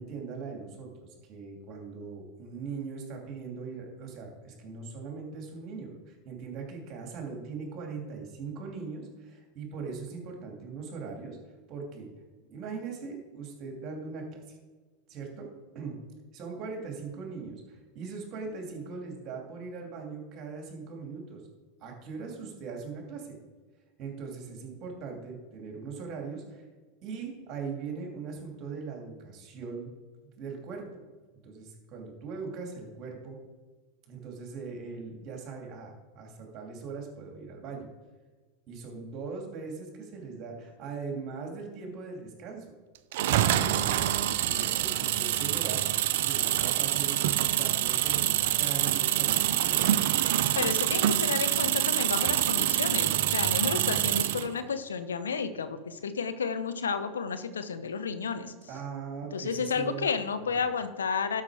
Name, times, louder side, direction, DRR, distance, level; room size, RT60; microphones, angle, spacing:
voice 1, 0.0-11.4 11.7-12.1 12.5-14.6 15.1-16.0 16.3-21.4 21.8-23.4 24.0-26.6 27.0-29.9 30.2-31.0 31.4-33.4 34.1-37.9 38.7-42.7 43.4-44.0 44.3-45.8 46.2-47.2 47.5-49.9 58.7-60.1 60.4-60.6, right 5 dB, 45° right, 1 dB, 2.8 m, -40 dB
sound 1, 43.1-54.5, right 12 dB, 65° right, 0.6 m, -26 dB
voice 2, 50.5-58.5 59.3-61.4, left 5 dB, 85° left, 11 dB, 0.8 m, -31 dB
12.0 x 5.8 x 4.9 m, 1.4 s
hypercardioid pair, 90°, 0 cm